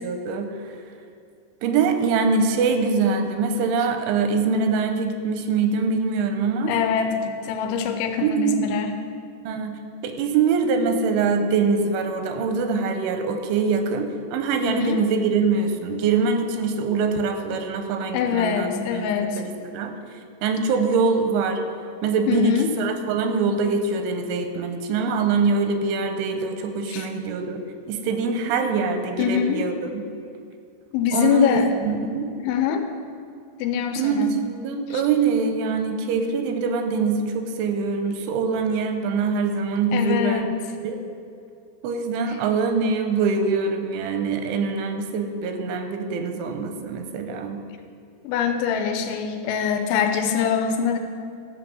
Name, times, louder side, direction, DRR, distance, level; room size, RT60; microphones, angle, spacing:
voice 1, 0.0-0.8 1.6-6.7 8.2-8.6 9.5-19.1 19.4-20.0 20.4-21.6 22.0-27.6 27.9-30.0 31.1-32.3 34.0-40.6 40.8-41.0 41.8-47.6, right 4 dB, 85° right, 6 dB, 3.0 m, -24 dB
voice 2, 6.7-8.9 14.6-15.0 18.1-19.4 22.3-22.7 26.9-27.1 29.2-29.6 30.9-31.7 32.4-32.8 33.6-34.3 34.9-35.0 39.9-40.5 48.2-51.0, left 7 dB, 85° left, 6 dB, 3.0 m, -23 dB
13.0 x 6.0 x 7.6 m, 2.4 s
omnidirectional pair, 5.7 m